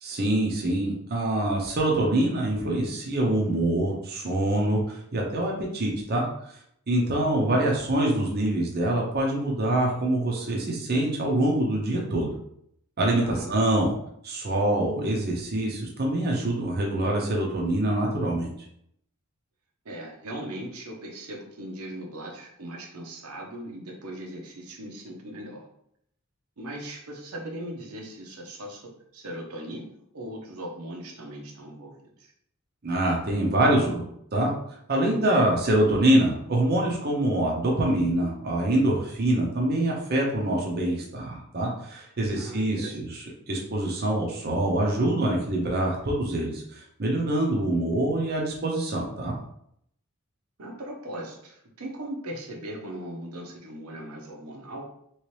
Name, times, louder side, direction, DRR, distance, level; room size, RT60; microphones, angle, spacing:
voice 1, 0.0-6.3 6.9-12.3 13.0-13.9 14.2-18.5 32.8-34.0 34.3-34.5 34.9-49.3, right 1 dB, 45° right, -1 dB, 0.7 m, -25 dB
voice 2, 13.2-13.6 19.8-25.6 26.6-32.3 42.3-43.0 50.6-54.8, right 1 dB, 90° right, 0 dB, 0.8 m, -39 dB
3.1 x 3.0 x 3.2 m, 0.71 s
head